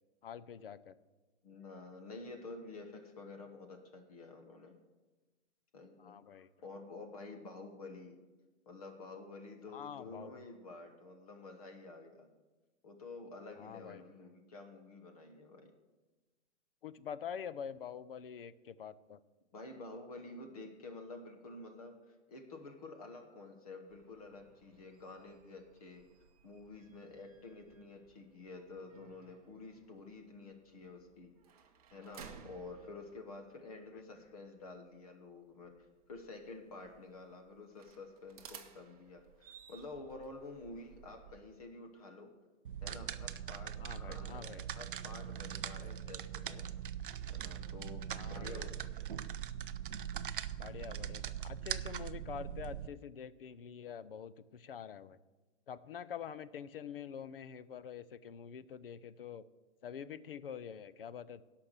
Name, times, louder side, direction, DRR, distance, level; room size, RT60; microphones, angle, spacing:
voice 1, 0.2-0.9 6.0-6.5 9.7-10.3 13.6-14.0 16.8-19.2 43.8-44.6 48.1-48.7 50.6-55.2 55.7-59.4 59.8-61.4, left 8 dB, 50° left, 15 dB, 0.6 m, -46 dB
voice 2, 1.4-4.7 5.7-8.2 8.7-12.3 12.8-15.7 19.5-26.1 26.4-31.3 31.9-42.3 42.8-46.7 47.3-49.1, left 3 dB, 30° left, 5 dB, 1.1 m, -50 dB
sound 1, 23.9-41.4, right 7 dB, 30° right, 0.9 m, -59 dB
sound 2, 42.6-52.9, right 9 dB, 45° right, 0.5 m, -41 dB
17.0 x 5.9 x 6.6 m, 1.2 s
hypercardioid pair, 175°, 37 cm